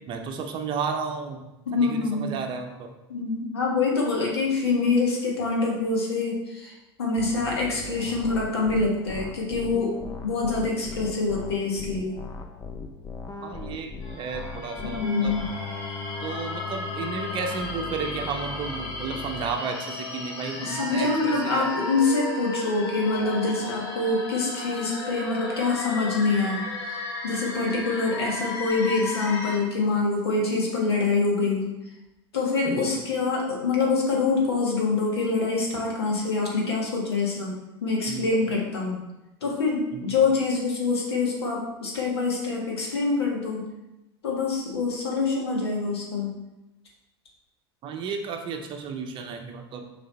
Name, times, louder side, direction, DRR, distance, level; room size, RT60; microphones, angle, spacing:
voice 1, 0.1-2.9 13.4-15.3 16.2-21.7 32.7-32.9 38.1-38.3 39.9-40.2 47.8-49.9, right 5 dB, 35° right, 4 dB, 0.8 m, -33 dB
voice 2, 1.7-2.3 3.1-9.9 10.2-12.2 14.8-15.5 20.6-31.7 32.3-37.5 37.8-39.0 39.4-43.6 44.2-46.3, left 3 dB, 65° left, -1 dB, 1.6 m, -25 dB
sound 1, 7.2-19.6, left 4 dB, 25° left, 0.6 m, -38 dB
sound 2, 14.0-29.6, left 2 dB, 45° left, 1.3 m, -34 dB
6.5 x 3.4 x 4.2 m, 0.97 s
figure-of-eight pair, 80°, 14 cm